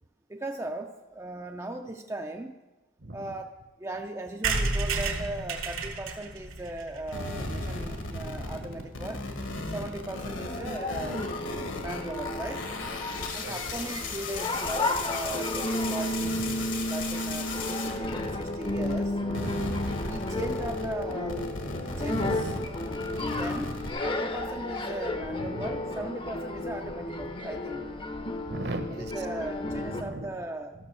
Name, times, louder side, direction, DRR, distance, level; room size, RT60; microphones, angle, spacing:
voice 1, 0.3-2.5 3.1-9.2 9.7-11.3 11.8-12.7 13.3-16.4 16.9-19.2 20.0-21.5 21.8-22.5 23.4-23.7 24.0-27.8 29.0-30.7, right 1 dB, 15° right, 3 dB, 0.4 m, -38 dB
voice 2, 3.0-3.3 8.6-8.9 13.4-13.6 16.2-16.7 19.2-20.0 22.1-22.8 25.3-25.8 28.5-29.3 29.6-30.4, right 1 dB, 55° right, 9 dB, 1.0 m, -38 dB
sound 1, 4.4-8.1 8.5-8.6 8.8-8.9 9.1-9.2 9.4-9.7, right 3 dB, 80° right, 1.4 m, -32 dB
sound 2, 7.1-19.0 19.3-23.9, left 2 dB, 70° left, 1.5 m, -36 dB
sound 3, 10.1-30.0, left 1 dB, 25° left, 0.7 m, -33 dB
13.5 x 6.7 x 6.2 m, 1.1 s
head